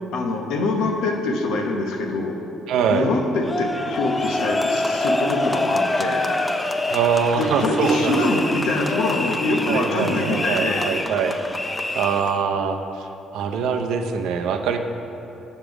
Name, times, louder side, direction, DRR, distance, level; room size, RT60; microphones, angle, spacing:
voice 1, 0.1-2.4 2.9-6.3 7.3-10.9, left 2 dB, 85° left, 2 dB, 0.9 m, -24 dB
voice 2, 2.7-3.1 6.9-8.5 9.7-11.4 11.9-14.8, right 6 dB, 80° right, 5 dB, 0.5 m, -23 dB
sound 1, 3.4-12.4, left 2 dB, 15° left, 0.4 m, -26 dB
7.5 x 5.1 x 6.1 m, 2.9 s
cardioid pair, 95°, 0 cm